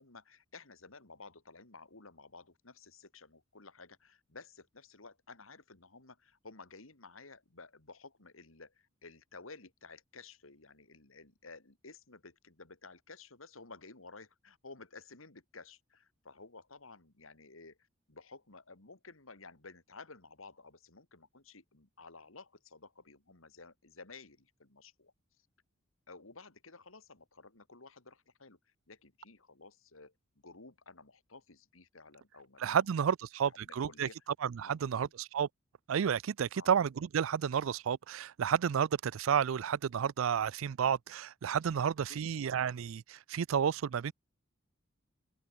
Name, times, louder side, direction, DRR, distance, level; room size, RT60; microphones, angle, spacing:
voice 1, 0.0-25.5 26.1-30.1 30.4-32.9 33.4-34.2 34.6-35.1 36.5-36.7 42.1-42.2, left 3 dB, 90° left, 3.0 m, -54 dB
voice 2, 32.6-34.1 34.4-35.1 35.3-35.5 35.9-44.1, right 7 dB, 75° right, 0.4 m, -31 dB
open air
head